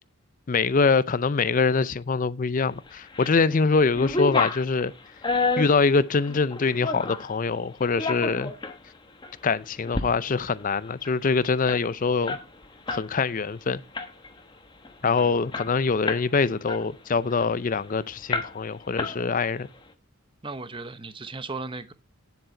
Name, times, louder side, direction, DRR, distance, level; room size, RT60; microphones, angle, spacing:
voice 1, 0.5-4.9 5.6-8.5 9.4-12.4 12.9-13.8 15.0-19.7, left 4 dB, 35° left, 0.5 m, -24 dB
sound 1, 2.9-3.4 3.7-7.3 7.8-8.8 9.2-9.4 9.8-10.1 10.4-10.5 10.7-13.1 13.4-13.6 13.9-14.4 14.8-14.9 15.2-16.3 16.7-17.8 18.3-18.7 19.0-19.6, left 3 dB, 20° left, 1.1 m, -30 dB
voice 2, 15.0-15.4 20.4-21.9, right 3 dB, 20° right, 0.8 m, -37 dB
9.7 x 7.6 x 4.4 m
head